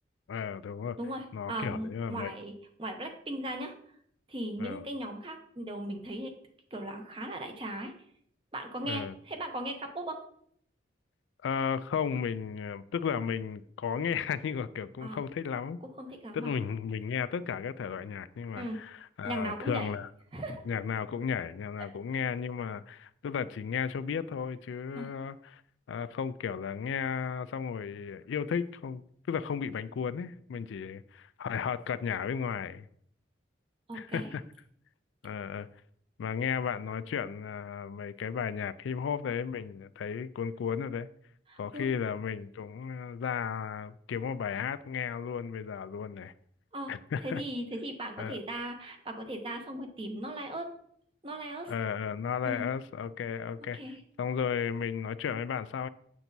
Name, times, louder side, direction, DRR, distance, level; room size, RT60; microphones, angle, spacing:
voice 1, 0.3-1.0 1.3-2.3 4.6-4.8 8.8-9.2 11.4-15.8 16.3-20.1 20.7-25.6 25.9-32.9 33.9-34.4 35.2-35.7 36.2-41.1 41.6-46.3 46.9-47.4 48.2-48.4 51.7-53.8 54.2-55.9, left 7 dB, 85° left, 0.3 m, -34 dB
voice 2, 1.0-2.5 2.8-3.7 4.3-6.3 6.7-7.9 8.5-10.2 15.0-15.2 16.0-16.5 18.6-18.8 19.2-19.9 20.3-20.6 24.9-25.1 33.9-34.3 41.5-41.9 46.7-46.9 47.2-50.7 51.2-51.7 52.4-52.7 53.7-54.0, right 1 dB, 30° right, 0.7 m, -37 dB
7.0 x 6.0 x 2.7 m
head